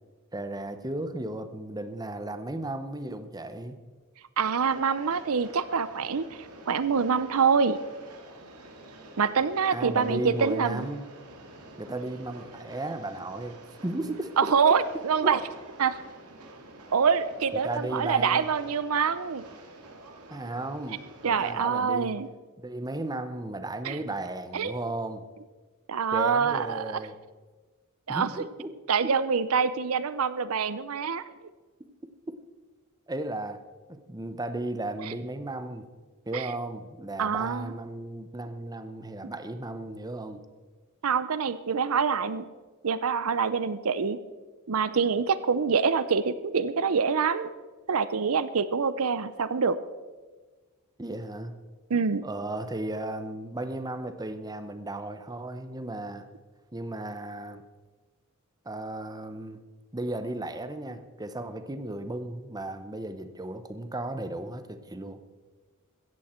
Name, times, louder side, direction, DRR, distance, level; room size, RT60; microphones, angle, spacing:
voice 1, 0.3-3.8 9.7-11.1 11.8-14.5 15.2-15.3 17.5-18.5 20.3-22.1 22.6-25.2 26.1-27.2 28.1-28.7 32.3-32.4 33.1-33.6 33.9-35.9 36.3-40.4 51.0-51.6 52.2-56.3 56.7-57.6 58.6-59.6 59.9-65.2, right 1 dB, 15° right, 10 dB, 0.8 m, -35 dB
voice 2, 4.4-6.3 6.7-7.8 9.2-10.9 14.4-15.4 15.8-15.9 16.9-19.5 21.2-22.3 23.8-24.0 24.5-24.8 25.9-27.0 28.1-28.5 28.9-31.2 35.0-35.1 36.3-36.5 37.2-37.7 41.0-42.5 42.8-44.2 44.7-47.5 47.9-49.8 51.9-52.2, right 6 dB, 70° right, 14 dB, 0.6 m, -25 dB
Train, 4.4-21.5, right 1 dB, 85° right, 2.6 m, -48 dB
16.5 x 14.0 x 4.4 m, 1.3 s
head